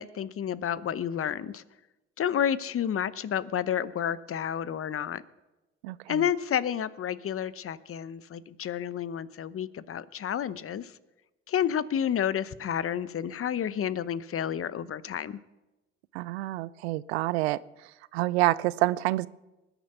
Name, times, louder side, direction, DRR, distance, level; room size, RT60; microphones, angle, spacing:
voice 1, 0.0-1.6 2.2-5.2 6.1-10.9 11.5-15.4, left 9 dB, 45° left, 17 dB, 0.9 m, -30 dB
voice 2, 5.8-6.2 16.1-17.6 18.1-19.3, right 19 dB, 90° right, 20 dB, 0.5 m, -27 dB
19.5 x 10.0 x 6.9 m, 1.0 s
hypercardioid pair, 55°, 31 cm